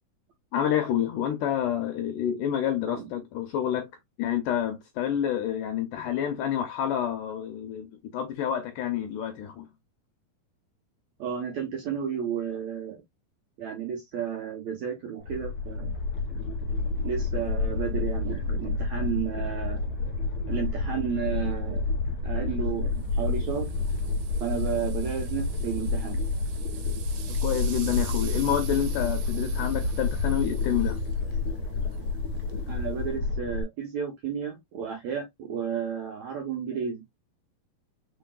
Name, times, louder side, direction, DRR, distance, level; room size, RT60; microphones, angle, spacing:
voice 1, 0.5-3.9 4.2-9.7 27.4-31.0, left 10 dB, 80° left, 1.9 m, -28 dB
voice 2, 11.2-13.0 13.6-15.9 17.0-19.8 20.5-21.8 22.2-23.7 24.4-26.2 32.7-37.0, right 8 dB, 70° right, 1.7 m, -32 dB
sound 1, 15.2-33.6, left 3 dB, 45° left, 2.1 m, -29 dB
sound 2, 22.9-33.2, right 5 dB, 90° right, 2.9 m, -45 dB
5.8 x 3.7 x 2.3 m
omnidirectional pair, 4.4 m